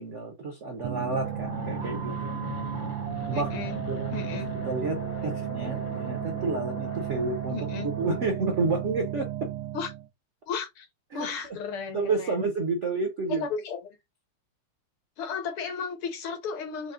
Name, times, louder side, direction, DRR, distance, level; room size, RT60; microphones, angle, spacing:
voice 1, 0.0-2.3 3.3-3.5 3.9-4.2 4.6-7.6 8.0-9.5 11.1-11.6 11.9-13.5, right 3 dB, 65° right, 0.7 m, -30 dB
sound 1, 0.8-10.1, right 13 dB, 85° right, 1.5 m, -34 dB
Fixed-wing aircraft airplane, 1.2-8.3, left 8 dB, 90° left, 1.7 m, -40 dB
voice 2, 3.3-3.8 4.1-4.5 7.5-7.9 9.7-9.9 10.5-10.9 11.1-12.4 13.3-14.0 15.2-16.9, left 6 dB, 70° left, 1.9 m, -34 dB
5.2 x 2.1 x 3.7 m
omnidirectional pair, 2.4 m